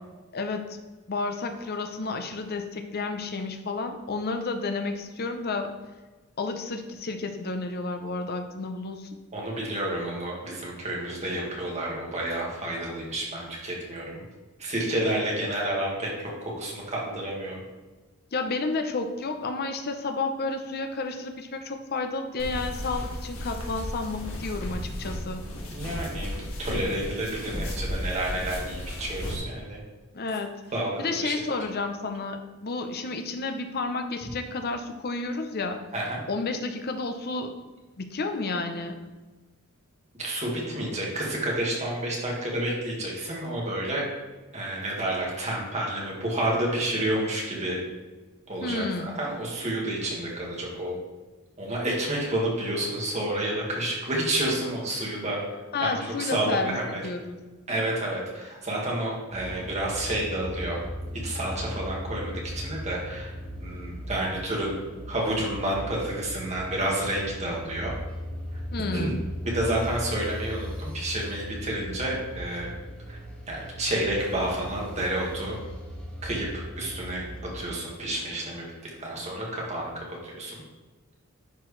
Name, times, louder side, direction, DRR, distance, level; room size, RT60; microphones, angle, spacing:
voice 1, 0.3-0.8 1.1-5.7 6.4-9.1 18.3-25.4 30.1-30.6 31.0-35.8 36.3-37.6 38.0-39.0 48.6-49.2 55.7-57.4 68.7-69.2, left 3 dB, 45° left, 6 dB, 0.7 m, -31 dB
voice 2, 9.3-14.2 14.6-16.1 16.4-17.6 25.7-29.8 30.7-30.9 31.2-31.4 35.9-36.2 40.2-44.1 44.5-47.8 48.5-51.0 51.6-55.4 55.8-57.0 57.7-60.8 61.2-63.3 63.6-64.8 65.1-67.9 68.9-69.1 69.4-72.7 73.1-73.2 73.5-75.6 76.2-77.3 77.5-80.6, right 1 dB, 35° right, -3 dB, 1.7 m, -30 dB
sound 1, 22.4-29.4, equal, 70° left, 1.6 m, -34 dB
sound 2, 59.3-77.7, equal, 5° left, 1.4 m, -38 dB
10.5 x 4.5 x 3.2 m, 1.3 s
head